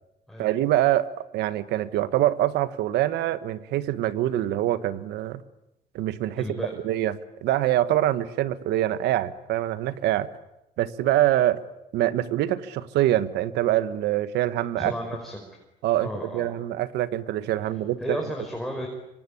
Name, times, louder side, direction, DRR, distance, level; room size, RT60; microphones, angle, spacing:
voice 1, 0.4-5.4 5.9-7.2 7.4-10.3 10.8-11.6 11.9-14.9 15.8-18.2, right 13 dB, 80° right, 13 dB, 1.6 m, -25 dB
voice 2, 6.4-6.7 14.8-15.4 16.0-16.5 18.0-18.9, equal, ahead, 1 dB, 5.0 m, -33 dB
26.0 x 25.5 x 8.6 m, 0.89 s
cardioid pair, 110°, 17 cm